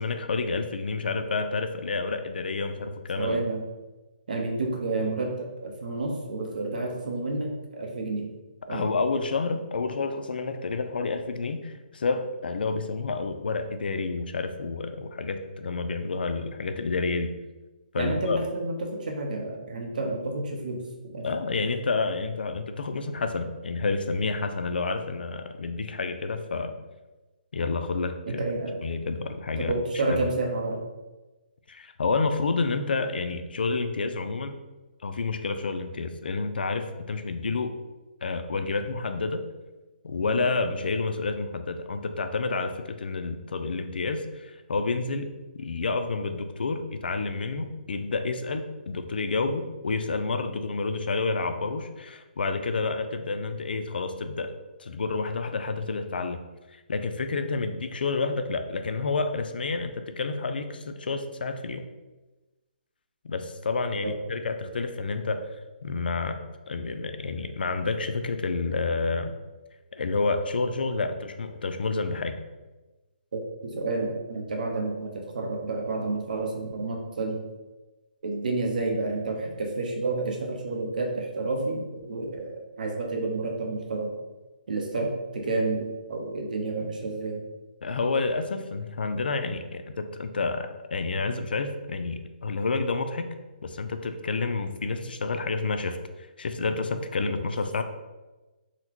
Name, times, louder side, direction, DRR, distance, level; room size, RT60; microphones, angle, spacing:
voice 1, 0.0-3.4 8.7-17.3 17.9-18.4 21.2-26.8 27.5-28.4 28.8-29.7 30.1-30.3 31.7-34.5 35.0-37.7 38.2-39.4 40.0-45.3 45.6-54.5 54.8-56.4 56.7-61.8 63.2-65.5 65.8-66.4 66.7-69.3 69.9-72.4 87.8-93.3 93.6-96.0 96.4-97.8, left 3 dB, 80° left, 8 dB, 0.4 m, -29 dB
voice 2, 3.2-3.6 4.3-8.3 8.7-8.9 18.0-21.2 28.3-28.8 29.6-30.8 40.2-40.4 64.0-64.1 73.3-77.4 78.2-84.1 84.7-87.4, right 2 dB, 55° right, 1 dB, 0.7 m, -30 dB
3.9 x 2.1 x 2.9 m, 1.1 s
hypercardioid pair, 170°, 5 cm